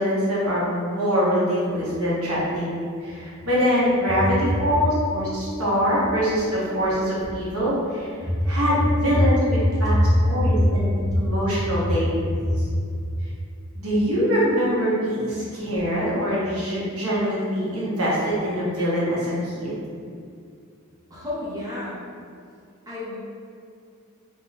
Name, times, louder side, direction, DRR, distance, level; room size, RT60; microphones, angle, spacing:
voice 1, 0.0-10.0 10.2-12.3 12.6-12.7 13.8-19.7, equal, 80° right, -7 dB, 1.4 m, -24 dB
voice 2, 9.8-10.7 11.1-11.2 11.6-11.7 12.3-12.6 13.0-13.1 21.1-22.0 22.9-23.2, equal, 15° right, -8 dB, 0.9 m, -23 dB
3.6 x 3.0 x 4.1 m, 2.3 s
head